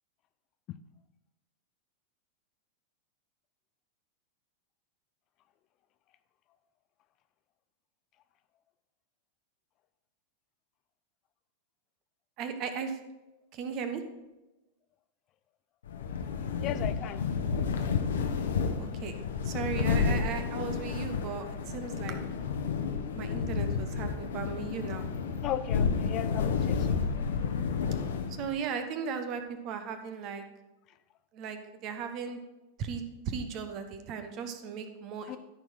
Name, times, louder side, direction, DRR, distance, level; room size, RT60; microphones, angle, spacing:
voice 1, 12.4-13.0 13.5-14.0 18.8-19.1 19.4-22.2 23.1-25.0 28.3-30.4 31.3-32.4 32.8-35.4, right 6 dB, 40° right, 8 dB, 1.3 m, -36 dB
sound 1, 15.9-28.6, left 5 dB, 65° left, 1.1 m, -31 dB
voice 2, 16.6-17.2 25.4-27.0 35.3-35.4, left 11 dB, 35° left, 11 dB, 0.6 m, -36 dB
13.5 x 4.7 x 5.9 m, 1.0 s
figure-of-eight pair, 90°, 0 cm